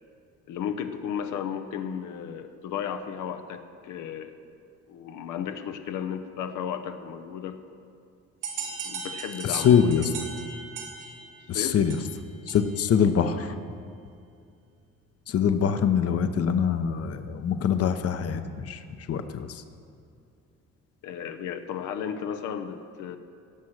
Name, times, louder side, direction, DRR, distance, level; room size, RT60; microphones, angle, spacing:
voice 1, 0.5-4.4 4.9-7.6 8.6-10.0 11.5-11.8 21.0-23.2, left 8 dB, 85° left, 7 dB, 0.8 m, -34 dB
sound 1, 8.4-12.9, right 5 dB, 90° right, 1.8 m, -38 dB
voice 2, 9.5-10.0 11.5-12.0 12.5-13.5 15.3-18.8 19.1-19.6, left 7 dB, 50° left, 9 dB, 0.8 m, -24 dB
17.5 x 6.3 x 6.4 m, 2.4 s
cardioid pair, 90°, 30 cm